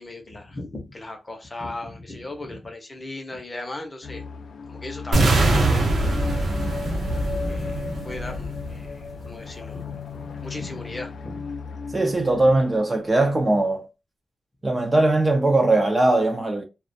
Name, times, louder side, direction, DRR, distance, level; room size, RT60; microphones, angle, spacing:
voice 1, 0.0-4.2 4.7-6.4 6.7-6.8 7.5-11.5, left 2 dB, 25° left, 0.6 m, -37 dB
sound 1, 4.0-12.8, left 5 dB, 80° left, 0.4 m, -36 dB
sound 2, 5.1-9.1, right 2 dB, 70° right, 0.7 m, -23 dB
voice 2, 11.9-13.9 14.6-16.6, right 2 dB, 25° right, 0.4 m, -20 dB
2.2 x 2.1 x 2.6 m
wide cardioid pair, 130°, 0 cm